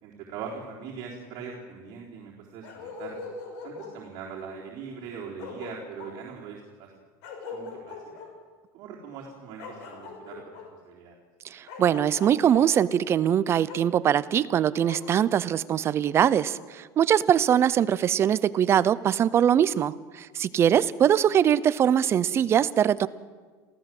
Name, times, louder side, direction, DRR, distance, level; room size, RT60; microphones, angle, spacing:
voice 1, 0.0-3.2 3.6-7.0 7.5-8.0 8.7-10.4 10.8-11.2, right 6 dB, 50° right, -4 dB, 4.1 m, -41 dB
Bark, 2.6-4.0 5.0-5.1 5.4-6.1 7.2-8.3 9.6-10.7 11.7-12.6 13.7-13.8 14.9-15.0, left 4 dB, 80° left, 5.9 m, -40 dB
voice 2, 11.5-23.1, right 9 dB, 30° right, 17 dB, 0.7 m, -22 dB
27.5 x 16.0 x 7.8 m, 1.5 s
cardioid pair, 155°, 9 cm